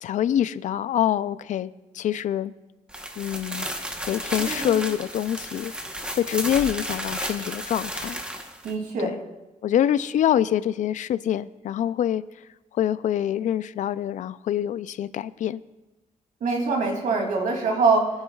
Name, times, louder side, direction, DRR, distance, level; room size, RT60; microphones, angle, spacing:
voice 1, 0.0-2.5 3.2-3.7 4.1-5.7 6.2-8.2 9.0-9.1 9.6-12.2 12.7-15.6, left 10 dB, 70° left, 16 dB, 0.4 m, -25 dB
sound 1, 2.9-8.7, right 1 dB, 5° right, 1.0 m, -33 dB
voice 2, 4.4-4.8 8.6-9.1 16.4-18.1, right 4 dB, 90° right, 1 dB, 2.6 m, -24 dB
23.0 x 9.8 x 2.3 m, 1.0 s
wide cardioid pair, 145°, 13 cm